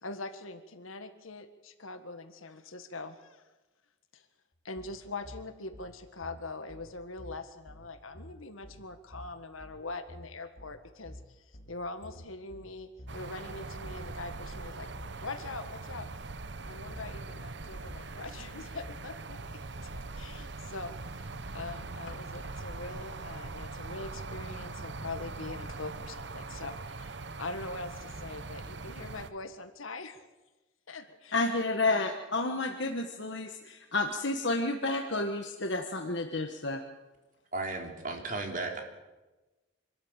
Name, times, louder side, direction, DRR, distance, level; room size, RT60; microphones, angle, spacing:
voice 1, 0.0-3.4 4.1-4.3 4.6-14.9 15.2-16.1 16.7-19.6 20.1-30.3 30.9-32.1, left 3 dB, 85° left, 9 dB, 1.7 m, -43 dB
sound 1, 4.8-20.0, equal, 35° left, 5.9 m, -50 dB
sound 2, 13.1-29.3, right 3 dB, 55° right, 0.9 m, -42 dB
voice 2, 31.3-36.8, left 2 dB, 60° left, 4 dB, 1.4 m, -30 dB
voice 3, 37.5-38.8, right 3 dB, 40° right, 3 dB, 3.6 m, -35 dB
25.5 x 13.5 x 8.9 m, 1.1 s
head